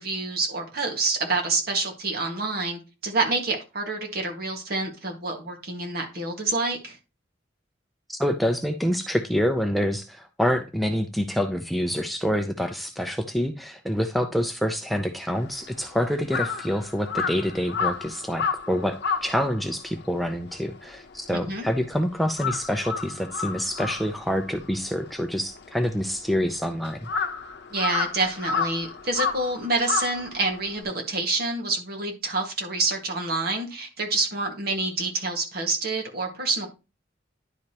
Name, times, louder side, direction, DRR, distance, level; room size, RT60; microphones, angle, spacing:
voice 1, 0.0-7.0 21.3-21.6 27.7-36.7, right 3 dB, 55° right, 2 dB, 1.7 m, -27 dB
voice 2, 8.1-27.1, equal, ahead, 5 dB, 0.5 m, -27 dB
Crow, 15.4-21.9 22.2-30.8, left 5 dB, 60° left, 0.8 m, -31 dB
10.5 x 4.9 x 2.9 m, 0.29 s
head